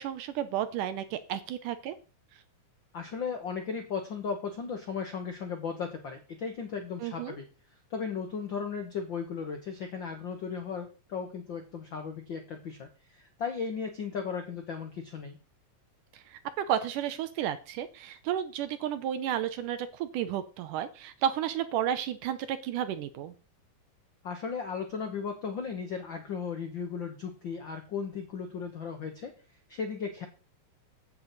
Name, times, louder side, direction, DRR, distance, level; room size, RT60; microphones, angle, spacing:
voice 1, 0.0-2.0 7.0-7.4 16.1-23.3, right 10 dB, 75° right, 11 dB, 2.2 m, -32 dB
voice 2, 2.9-7.4 7.9-15.4 24.2-29.3 29.7-30.3, left 6 dB, 75° left, 5 dB, 1.1 m, -36 dB
9.7 x 8.3 x 4.1 m, 0.35 s
omnidirectional pair, 3.9 m